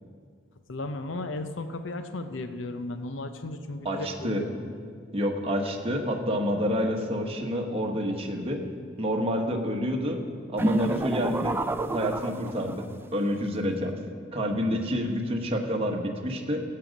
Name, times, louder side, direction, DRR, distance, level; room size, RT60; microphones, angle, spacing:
voice 1, 0.7-4.5 13.6-13.8, left 2 dB, 70° left, 8 dB, 0.7 m, -35 dB
voice 2, 3.8-4.4 5.1-8.6 9.0-10.2 10.5-12.8 13.1-13.9 14.3-16.6, equal, 30° right, 2 dB, 1.2 m, -28 dB
sound 1, 10.6-13.0, right 2 dB, 10° right, 0.3 m, -29 dB
17.0 x 7.6 x 5.2 m, 2.1 s
head